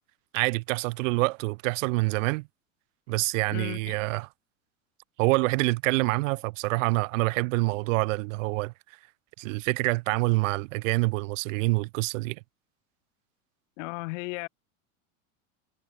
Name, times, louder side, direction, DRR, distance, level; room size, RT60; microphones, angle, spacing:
voice 1, 0.3-2.5 3.1-4.3 5.2-8.7 9.4-12.4, right 24 dB, 70° right, 1.2 m, -26 dB
voice 2, 3.5-4.0 13.8-14.5, left 28 dB, 65° left, 3.0 m, -35 dB
hypercardioid pair, 105°, 40 cm